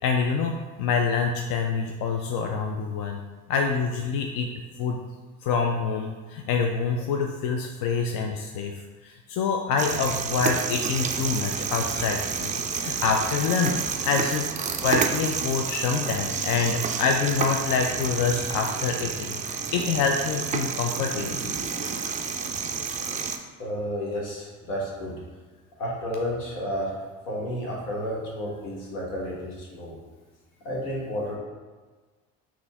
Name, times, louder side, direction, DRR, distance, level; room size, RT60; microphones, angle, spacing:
voice 1, 0.0-3.2 3.5-4.5 4.8-5.0 5.4-8.7 9.0-14.5 14.8-21.4, left 5 dB, 55° left, 3 dB, 0.5 m, -26 dB
sound 1, 9.8-23.4, right 6 dB, 20° right, 0.3 m, -30 dB
voice 2, 21.0-22.2 23.6-25.2 25.8-26.9 27.2-29.9 30.6-31.4, equal, 75° left, -4 dB, 1.4 m, -32 dB
3.9 x 3.0 x 3.5 m, 1.4 s
figure-of-eight pair, 55°, 41 cm